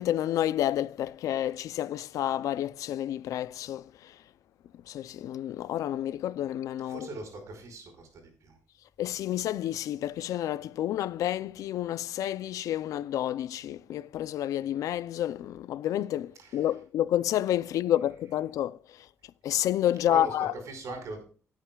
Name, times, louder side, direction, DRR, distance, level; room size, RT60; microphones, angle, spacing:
voice 1, 0.0-4.2 4.9-7.1 9.0-19.1 19.4-20.5, left 12 dB, 90° left, 0.5 m, -30 dB
voice 2, 6.8-8.1 8.4-8.6 16.4-16.8 17.9-18.3 20.1-21.3, right 2 dB, 70° right, 5.0 m, -41 dB
18.0 x 9.0 x 2.3 m
cardioid pair, 115°, 6 cm